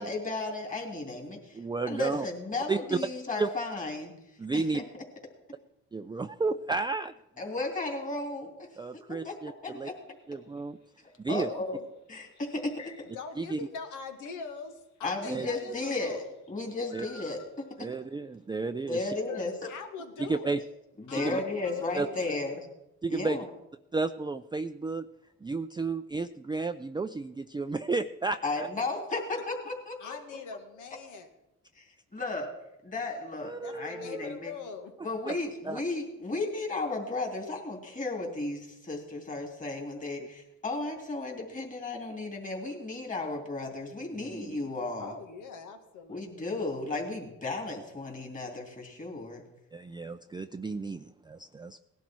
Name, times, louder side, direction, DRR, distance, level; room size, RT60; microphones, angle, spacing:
voice 1, 0.0-1.6 1.9-4.1 4.5-4.8 7.4-8.7 9.2-9.3 9.6-10.0 11.3-11.8 12.1-13.1 15.0-16.2 16.5-17.9 18.9-19.5 21.0-22.6 23.1-23.4 28.4-30.2 31.7-32.5 32.8-34.5 35.0-45.1 46.1-49.4, left 2 dB, 25° left, 1 dB, 3.3 m, -34 dB
voice 2, 1.5-2.3 2.7-3.0 3.4-3.5 4.4-4.8 5.9-7.1 8.8-9.9 10.3-10.8 11.2-11.5 13.4-13.6 15.3-15.5 16.9-17.1 17.8-19.1 20.2-20.6 21.1-21.4 21.9-22.1 23.0-23.4 23.9-25.1 25.4-28.7 33.4-34.3 35.3-35.4 35.7-35.8 44.1-44.6 49.7-51.8, right 3 dB, 15° right, 8 dB, 0.5 m, -32 dB
sound 1, 10.0-11.2 12.1-13.4 13.8-14.3 15.0-15.2 15.9-18.1, left 5 dB, 65° left, 1.7 m, -51 dB
voice 3, 11.5-11.9 13.1-16.3 19.3-20.6 21.1-22.4 30.0-31.3 33.6-34.9 45.0-46.5, left 5 dB, 85° left, 5 dB, 2.0 m, -42 dB
18.5 x 11.5 x 4.6 m, 0.89 s
cardioid pair, 90°, 30 cm